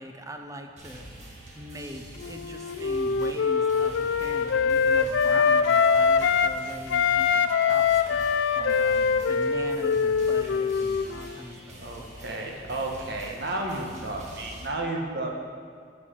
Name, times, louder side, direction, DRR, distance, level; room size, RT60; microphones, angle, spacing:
voice 1, 0.0-8.3 8.6-12.1, equal, 15° right, 5 dB, 0.6 m, -41 dB
sound 1, 0.8-14.7, equal, 40° right, 1.5 m, -46 dB
Wind instrument woodwind instrument, 2.2-6.6 6.9-11.4, left 6 dB, 75° left, 0.3 m, -23 dB
voice 2, 11.7-15.4, right 2 dB, 60° right, 1 dB, 1.2 m, -32 dB
7.4 x 6.3 x 6.1 m, 2.1 s
head